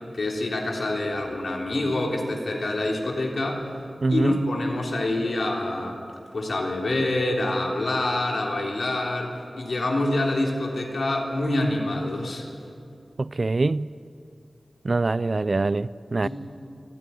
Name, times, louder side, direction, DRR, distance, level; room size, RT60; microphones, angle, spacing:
voice 1, 0.1-3.6 4.1-6.0 6.3-12.4 16.2-16.3, left 2 dB, 75° left, 3.4 m, -26 dB
voice 2, 4.0-4.4 13.2-13.9 14.8-16.3, right 3 dB, 50° right, 0.4 m, -24 dB
27.5 x 10.0 x 9.9 m
wide cardioid pair, 85°, 0 cm